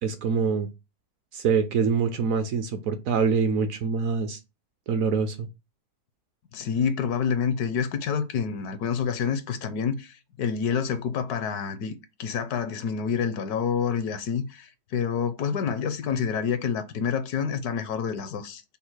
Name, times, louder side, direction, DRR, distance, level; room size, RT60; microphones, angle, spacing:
voice 1, 0.0-0.7 1.3-4.4 4.9-5.5, right 5 dB, 65° right, 0.9 m, -25 dB
voice 2, 6.5-18.6, left 6 dB, 75° left, 1.1 m, -28 dB
5.4 x 2.1 x 4.5 m
omnidirectional pair, 1.8 m